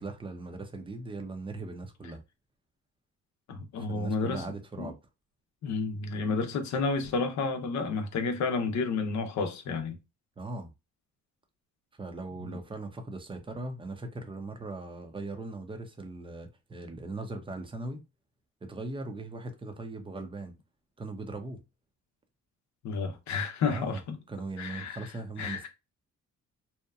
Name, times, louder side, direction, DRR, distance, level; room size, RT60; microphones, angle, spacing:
voice 1, 0.0-2.2 3.8-5.0 10.4-10.7 12.0-18.0 18.6-20.5 21.0-21.6 23.7-24.0 24.3-25.7, right 2 dB, 15° right, 0.6 m, -39 dB
voice 2, 3.5-4.4 4.8-4.9 5.6-10.0 12.4-12.6 22.8-24.2 24.6-25.1 25.4-25.7, left 4 dB, 65° left, 0.7 m, -31 dB
2.8 x 2.1 x 2.3 m
cardioid pair, 90°, 30 cm